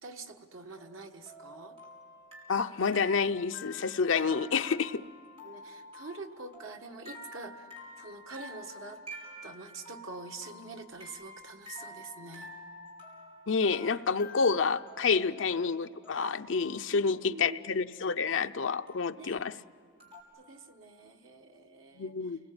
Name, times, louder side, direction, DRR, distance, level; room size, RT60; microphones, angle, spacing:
voice 1, 0.0-1.8 5.4-7.7 8.0-9.0 9.4-12.5 15.3-15.4 16.9-17.0 17.3-17.6 19.2-19.5 20.4-22.1, right 3 dB, 90° right, 3 dB, 1.7 m, -45 dB
sound 1, 0.8-17.2 18.9-19.4 20.0-20.2, left 1 dB, 30° right, 5.3 m, -49 dB
voice 2, 2.5-5.0 13.5-19.5 22.0-22.4, left 5 dB, 70° left, 9 dB, 0.6 m, -29 dB
29.0 x 20.5 x 8.8 m, 2.4 s
head